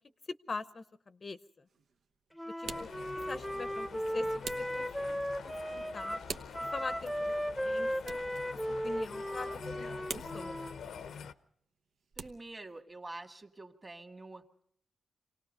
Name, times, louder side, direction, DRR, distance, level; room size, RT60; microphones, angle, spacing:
voice 1, 0.5-1.6 2.6-2.9 3.3-5.2 5.4-6.2 6.6-7.3 7.6-8.2 8.8-10.6, left 3 dB, 40° left, 12 dB, 0.7 m, -43 dB
sound 1, 1.7-2.1 2.6-3.9 4.4-5.1 6.2-7.0 8.0-8.5 8.8-9.4 10.1-11.2 11.9-12.6, right 5 dB, 75° right, 1.0 m, -45 dB
Wind instrument woodwind instrument, 2.4-10.8, equal, ahead, 0.9 m, -36 dB
sound 2, 2.6-11.3, left 7 dB, 85° left, 0.8 m, -47 dB
voice 2, 12.2-14.4, right 2 dB, 25° right, 6 dB, 1.8 m, -47 dB
26.0 x 18.5 x 5.4 m, 0.68 s
cardioid pair, 90°, 0 cm